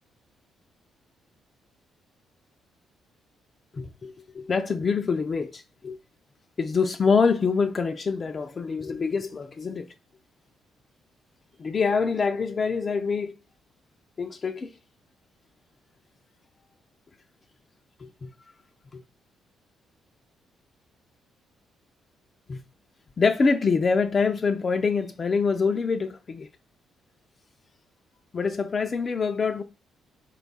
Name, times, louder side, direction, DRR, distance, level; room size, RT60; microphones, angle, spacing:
voice 1, 3.7-6.0 6.6-9.9 11.6-13.4 14.2-14.7 18.2-18.3 18.9-19.0 22.5-22.6 23.2-26.5 28.3-29.6, left 5 dB, 40° left, 0.4 m, -25 dB
4.4 x 2.3 x 3.9 m
cardioid pair, 90°, 0 cm